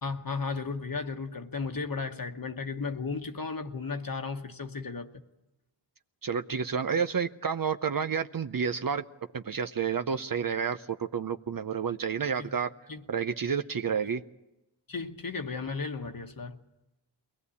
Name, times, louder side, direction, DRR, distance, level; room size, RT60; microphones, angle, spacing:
voice 1, 0.0-5.1 12.4-12.5 12.9-13.0 14.9-16.6, left 4 dB, 50° left, 1.2 m, -34 dB
voice 2, 6.2-9.0 9.3-12.7 13.1-14.2, right 6 dB, 50° right, 0.7 m, -30 dB
22.0 x 18.0 x 8.4 m
wide cardioid pair, 55°, 43 cm